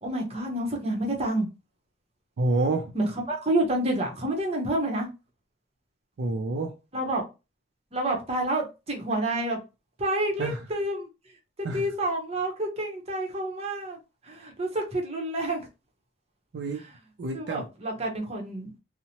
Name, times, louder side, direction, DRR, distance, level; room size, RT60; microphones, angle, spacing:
voice 1, 0.0-1.5 2.9-5.1 6.9-7.2 7.9-9.6 10.0-11.1 11.7-14.0 14.2-15.6 17.3-18.8, right 1 dB, 35° right, 0.8 m, -28 dB
voice 2, 2.4-2.9 6.2-6.7 10.4-10.6 11.6-11.9 16.5-16.8 17.2-17.7, right 2 dB, 80° right, 0.4 m, -28 dB
2.8 x 2.1 x 2.8 m
head